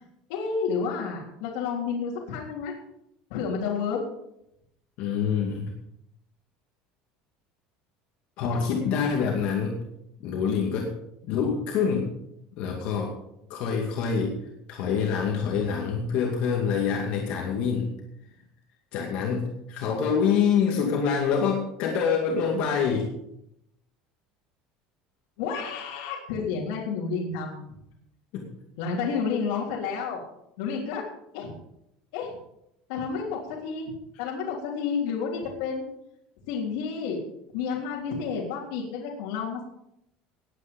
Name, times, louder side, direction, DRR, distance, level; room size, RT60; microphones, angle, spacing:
voice 1, 0.3-2.8 3.3-4.0 25.4-27.7 28.8-30.2 30.6-31.0 31.3-31.5 32.1-32.3 32.9-33.9 34.2-35.9 36.5-37.2 37.5-39.6, left 5 dB, 75° left, -4 dB, 3.5 m, -30 dB
voice 2, 5.0-5.7 8.4-9.8 10.2-10.9 11.3-12.1 12.6-13.1 13.5-14.4 14.7-17.9 18.9-23.1 28.3-28.5, left 6 dB, 50° left, 0 dB, 2.3 m, -26 dB
19.0 x 9.0 x 5.3 m, 0.81 s
cardioid pair, 175°, 3 cm